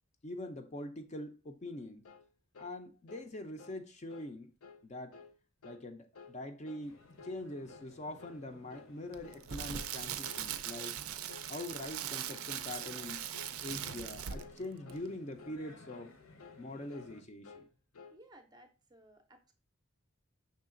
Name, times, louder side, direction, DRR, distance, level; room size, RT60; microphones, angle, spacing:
voice 1, 0.2-2.0 2.6-4.5 4.8-5.2 5.6-7.0 7.2-11.0 11.5-13.3 13.6-16.1 16.6-17.7, left 1 dB, 30° left, 0.4 m, -43 dB
sound 1, 2.0-2.3 2.5-2.8 3.1-3.3 3.6-3.8 4.1-4.3 4.6-4.8 5.1-5.3 5.6-5.9 6.1-6.4 6.6-6.9 7.2-7.4 7.7-7.9 8.2-8.4 8.7-8.9 9.2-9.5 9.7-9.9 10.2-10.5 10.7-11.0 11.3-11.5 11.8-12.0 12.3-12.5 12.8-13.0 13.3-13.5 13.8-14.1 14.3-14.6 14.9-15.1 15.4-15.6 15.9-16.1 16.4-16.6 16.9-17.1 17.4-17.7 17.9-18.2, left 5 dB, 80° left, 0.5 m, -54 dB
sound 2, 6.8-17.2, left 2 dB, 65° left, 0.9 m, -58 dB
Crackle, 9.1-14.6 14.9-15.1, right 10 dB, 75° right, 0.4 m, -40 dB
voice 2, 18.1-19.5, right 1 dB, 20° right, 0.5 m, -59 dB
5.5 x 3.6 x 2.4 m
head